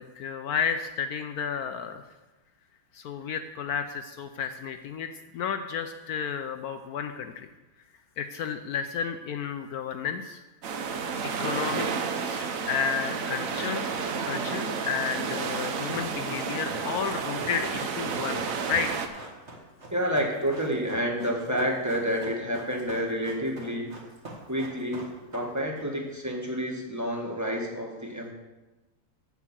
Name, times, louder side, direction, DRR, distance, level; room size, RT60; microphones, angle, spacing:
voice 1, 0.0-2.0 2.9-5.1 5.3-7.5 8.2-10.4 11.4-11.9 12.2-13.9 14.3-18.9, left 7 dB, 75° left, 8 dB, 0.8 m, -32 dB
sound 1, 10.6-19.1, right 5 dB, 60° right, 0.9 m, -31 dB
Run, 15.2-25.8 26.1-26.2, right 2 dB, 35° right, 2.0 m, -44 dB
voice 2, 19.9-23.9 24.5-28.3, equal, 10° right, 0 dB, 1.2 m, -29 dB
8.3 x 7.2 x 7.4 m, 1.1 s
omnidirectional pair, 2.2 m